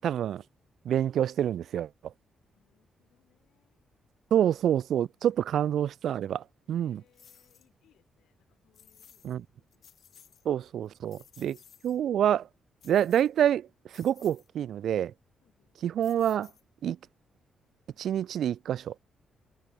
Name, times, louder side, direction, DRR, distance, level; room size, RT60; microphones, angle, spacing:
voice 1, 0.0-0.4 0.9-1.9 4.3-7.0 9.2-9.4 10.5-11.6 11.8-12.5 12.8-13.7 13.9-15.1 15.8-16.5 16.8-17.0 18.0-18.9, right 10 dB, 70° right, 0.3 m, -27 dB
voice 2, 2.6-3.8 4.3-4.4 5.0-5.4 6.7-10.6 11.3-11.5 15.4-15.7, left 12 dB, 85° left, 7.6 m, -70 dB
sound 1, 7.1-7.7 8.7-9.4 9.7-10.4 10.8-12.0 12.8-13.5 13.9-14.5 16.0-16.9, left 8 dB, 55° left, 7.2 m, -57 dB
cardioid pair, 130°, 0 cm